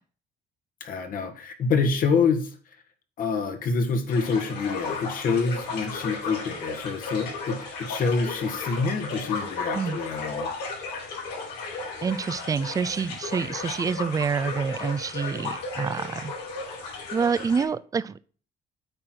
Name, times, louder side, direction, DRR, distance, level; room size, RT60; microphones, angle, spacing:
voice 1, 0.8-2.6 3.2-10.5, left 4 dB, 55° left, 1.6 m, -26 dB
sound 1, 4.1-17.6, left 3 dB, 80° left, 4.5 m, -35 dB
voice 2, 12.0-16.3 17.1-18.2, right 5 dB, 20° right, 0.4 m, -27 dB
8.7 x 4.5 x 6.1 m
cardioid pair, 110°, 17 cm